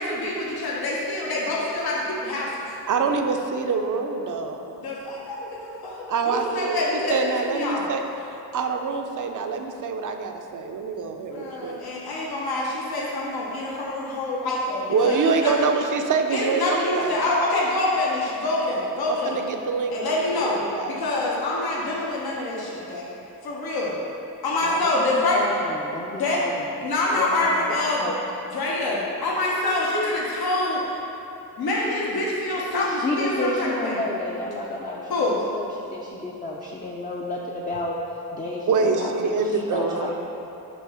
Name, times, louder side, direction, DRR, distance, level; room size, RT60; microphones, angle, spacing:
voice 1, 0.0-2.7 4.8-7.9 11.3-15.5 16.3-19.4 19.9-23.1 23.4-24.0 24.4-25.4 26.2-26.4 26.8-28.1 28.5-30.8 31.6-34.0 35.1-35.4, left 2 dB, 70° left, -5 dB, 1.1 m, -26 dB
voice 2, 2.9-4.8 6.1-6.8 7.1-11.8 14.9-17.1 19.1-20.2 20.4-21.0 38.7-40.1, right 4 dB, 50° right, 5 dB, 0.6 m, -25 dB
voice 3, 24.6-26.5 27.1-27.6 28.0-28.2 32.9-38.0 38.3-39.1 39.4-40.1, left 2 dB, 20° left, -3 dB, 0.6 m, -31 dB
6.2 x 3.2 x 5.6 m, 2.9 s
cardioid pair, 85°, 39 cm